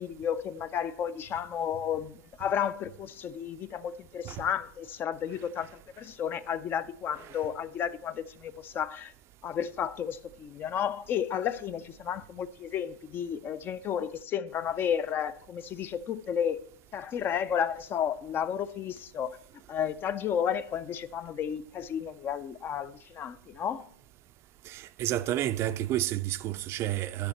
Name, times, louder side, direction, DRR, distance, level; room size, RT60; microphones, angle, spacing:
voice 1, 0.0-9.1 9.4-16.6 16.9-19.4 19.7-23.9, left 8 dB, 30° left, 0.4 m, -32 dB
voice 2, 24.7-27.3, right 13 dB, 35° right, 0.4 m, -30 dB
11.0 x 6.3 x 4.2 m
figure-of-eight pair, 95°, 8 cm